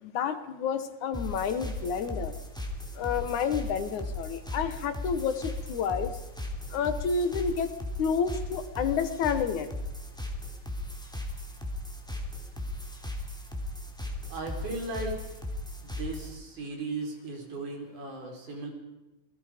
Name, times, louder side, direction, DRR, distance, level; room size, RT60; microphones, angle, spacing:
voice 1, 0.0-2.3 3.0-6.1 6.7-7.7 8.0-9.7, left 6 dB, 70° left, 11 dB, 2.5 m, -29 dB
sound 1, 1.1-16.4, left 1 dB, ahead, 2.6 m, -37 dB
voice 2, 14.3-15.2 15.8-18.7, right 2 dB, 65° right, 2 dB, 5.8 m, -36 dB
27.5 x 19.5 x 5.0 m, 1.1 s
omnidirectional pair, 3.8 m